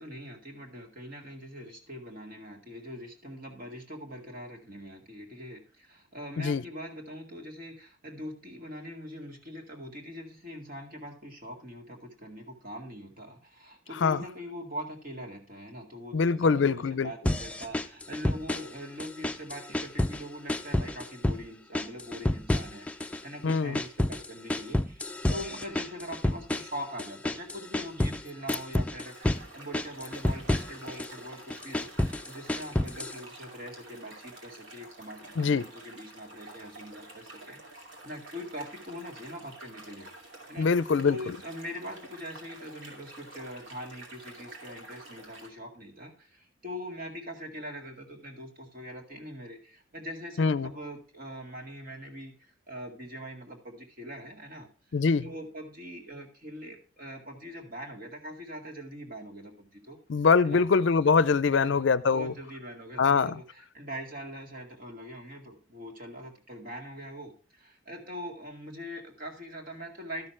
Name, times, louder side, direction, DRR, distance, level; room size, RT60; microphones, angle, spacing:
voice 1, 0.0-40.7 41.1-60.0 60.4-60.7 61.5-70.3, equal, 45° right, 2.1 m, -42 dB
voice 2, 16.1-17.1 23.4-23.8 35.4-35.6 40.6-41.2 50.4-50.7 54.9-55.3 60.1-62.3 63.0-63.4, left 5 dB, 65° left, 0.5 m, -23 dB
sound 1, 17.2-18.7 19.0-20.2 20.5-21.4 21.7-23.2 23.5-28.2 28.5-29.4 29.7-31.1 31.5-33.2, left 1 dB, 5° left, 0.4 m, -29 dB
sound 2, 29.0-45.5, right 2 dB, 70° right, 2.6 m, -49 dB
12.0 x 6.6 x 4.4 m
head